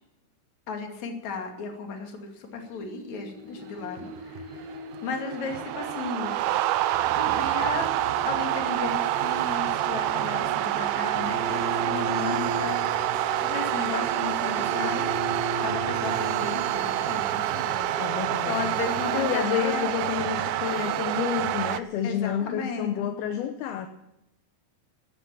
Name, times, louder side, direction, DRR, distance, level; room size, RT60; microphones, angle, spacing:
voice 1, 0.7-6.4 7.2-7.9 8.2-13.1 13.4-15.1 15.6-17.9 18.5-19.9 22.0-23.1, left 5 dB, 50° left, 3 dB, 3.4 m, -35 dB
sound 1, 2.7-22.2, left 2 dB, 25° left, 4.6 m, -43 dB
sound 2, 3.9-21.8, right 14 dB, 80° right, 2.2 m, -27 dB
Bowed string instrument, 11.2-17.3, right 2 dB, 50° right, 2.8 m, -35 dB
voice 2, 18.0-18.7 19.1-23.9, left 10 dB, 75° left, 7 dB, 2.7 m, -30 dB
15.5 x 12.5 x 7.1 m, 0.90 s
omnidirectional pair, 4.7 m